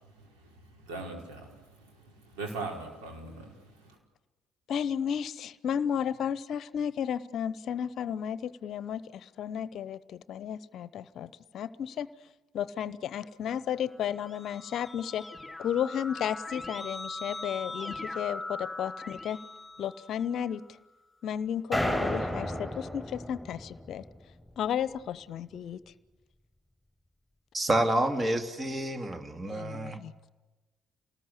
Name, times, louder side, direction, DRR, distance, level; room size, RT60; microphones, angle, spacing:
voice 1, 0.4-4.0, right 3 dB, 75° right, 1 dB, 4.9 m, -41 dB
voice 2, 4.7-12.1 12.5-15.3 15.6-19.4 19.8-20.6 21.2-24.0 24.6-25.8 29.5-30.3, left 9 dB, 55° left, 18 dB, 0.8 m, -33 dB
Keyboard (musical), 13.9-20.6, left 2 dB, 10° left, 3.5 m, -41 dB
sound 1, 21.7-24.1, equal, 5° right, 6.9 m, -32 dB
voice 3, 27.5-30.0, right 1 dB, 30° right, 7 dB, 2.3 m, -29 dB
28.0 x 19.5 x 8.3 m, 1.2 s
figure-of-eight pair, 45°, 0 cm